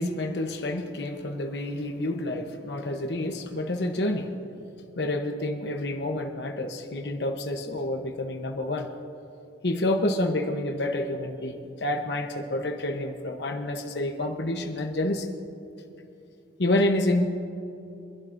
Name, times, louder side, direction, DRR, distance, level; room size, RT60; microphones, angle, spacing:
voice 1, 0.0-4.4 5.0-8.9 9.6-15.3 16.6-17.2, left 1 dB, 65° left, 3 dB, 0.9 m, -28 dB
24.5 x 12.0 x 2.6 m, 2.8 s
head